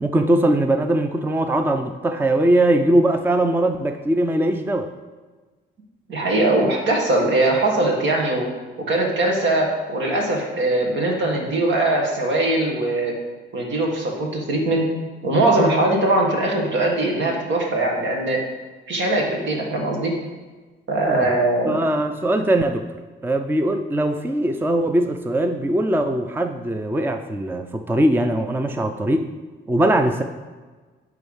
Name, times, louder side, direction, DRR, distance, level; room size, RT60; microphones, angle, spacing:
voice 1, 0.0-4.9 21.1-21.3 21.6-22.9 23.2-29.3 29.7-30.2, right 1 dB, 10° right, 7 dB, 0.5 m, -21 dB
voice 2, 6.1-8.5 8.9-13.1 13.5-14.9 15.2-18.4 18.9-20.1 20.9-21.8, right 2 dB, 70° right, 0 dB, 1.9 m, -21 dB
9.9 x 3.5 x 5.6 m, 1.3 s
cardioid pair, 90°, 20 cm